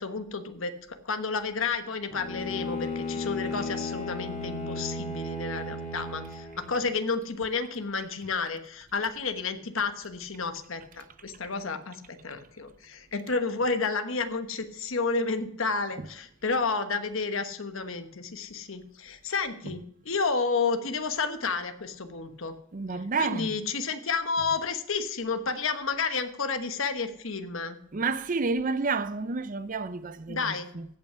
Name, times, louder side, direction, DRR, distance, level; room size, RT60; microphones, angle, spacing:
voice 1, 0.0-22.5 22.9-27.8 30.3-30.7, left 4 dB, 70° left, 1.2 m, -31 dB
Bowed string instrument, 2.1-6.9, left 2 dB, 35° left, 1.9 m, -34 dB
voice 2, 22.7-23.5 27.9-30.9, right 4 dB, 40° right, 0.6 m, -30 dB
16.0 x 5.8 x 5.6 m
head